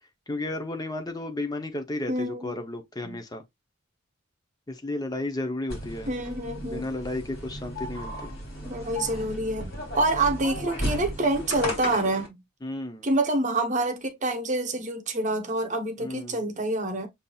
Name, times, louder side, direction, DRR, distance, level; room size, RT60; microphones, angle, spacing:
voice 1, 0.3-3.4 4.7-6.1 6.7-8.3 12.6-13.1 16.0-16.4, left 2 dB, 20° left, 0.6 m, -33 dB
voice 2, 2.1-2.5 3.0-3.2 6.1-6.9 8.6-12.4 13.0-17.1, right 2 dB, 35° right, 0.9 m, -27 dB
sound 1, 5.7-12.3, equal, 50° left, 2.6 m, -35 dB
7.1 x 2.7 x 2.3 m
head